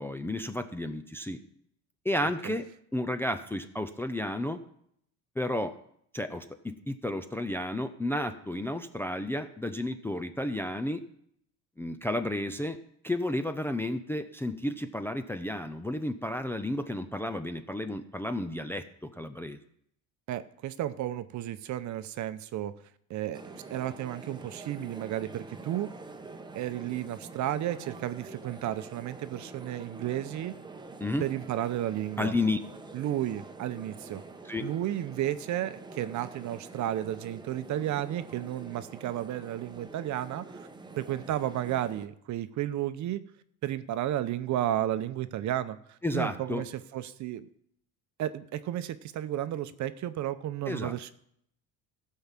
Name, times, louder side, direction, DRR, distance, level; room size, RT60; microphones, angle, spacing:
voice 1, 0.0-1.4 2.0-4.6 5.4-5.7 6.1-11.0 11.8-12.8 13.0-19.6 31.0-31.2 32.2-32.6 34.4-34.7 46.0-46.6 50.7-51.0, left 1 dB, 5° left, 7 dB, 0.5 m, -32 dB
voice 2, 20.3-22.7 23.1-25.9 26.5-30.5 31.2-32.3 32.9-34.2 34.6-40.7 41.0-43.2 43.6-47.5 48.2-51.1, right 12 dB, 50° right, 13 dB, 0.8 m, -33 dB
sound 1, 23.3-42.1, right 3 dB, 10° right, 0.9 m, -46 dB
15.5 x 5.6 x 7.4 m, 0.70 s
cardioid pair, 140°, 37 cm